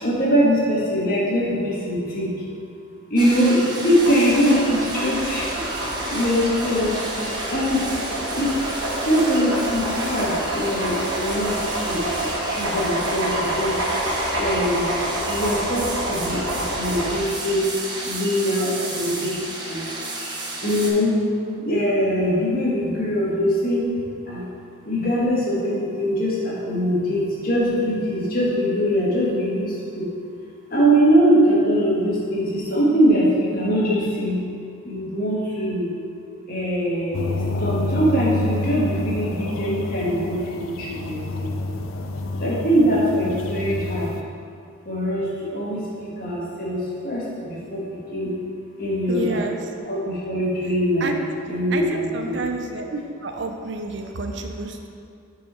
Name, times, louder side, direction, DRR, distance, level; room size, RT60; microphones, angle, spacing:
voice 1, 0.0-2.3 3.1-5.5 6.1-7.0 7.5-7.8 8.3-8.5 9.0-11.6 11.8-12.0 12.5-13.7 14.4-14.9 15.3-17.7 18.0-19.4 19.7-19.8 20.6-21.1 21.6-23.9 24.3-24.4 24.8-30.0 30.7-34.4 34.8-35.9 36.5-40.4 40.6-41.5 42.4-44.1 44.9-45.2 45.5-46.8 47.0-47.8 48.1-48.3 48.8-49.4 49.9-51.1 51.5-52.4, equal, 45° left, -6 dB, 1.5 m, -22 dB
sound 1, 3.2-20.9, right 2 dB, 20° right, 0.8 m, -32 dB
sound 2, 3.9-17.1, right 1 dB, 90° right, 1.4 m, -28 dB
sound 3, 37.1-44.2, left 2 dB, 85° left, 0.5 m, -28 dB
voice 2, 49.1-49.6 51.0-51.2 51.7-54.9, right 3 dB, 60° right, 4 dB, 0.5 m, -30 dB
7.1 x 4.7 x 4.4 m, 2.3 s
head